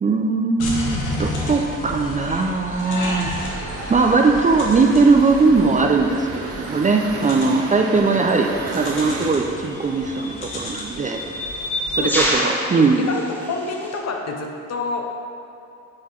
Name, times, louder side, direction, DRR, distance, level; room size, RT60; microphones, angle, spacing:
voice 1, 0.0-3.3 3.9-11.2 12.0-13.1, right 4 dB, 25° right, 2 dB, 0.4 m, -19 dB
sound 1, 0.6-12.3, left 1 dB, 90° left, 1.2 m, -32 dB
sound 2, 3.4-9.3, right 3 dB, 50° right, 0.8 m, -33 dB
sound 3, 8.6-8.8 9.8-14.0, equal, 5° left, 1.0 m, -27 dB
voice 2, 11.9-13.2 13.5-15.1, left 4 dB, 55° left, 2 dB, 0.8 m, -29 dB
5.7 x 4.7 x 4.5 m, 2.7 s
cardioid pair, 90°, 30 cm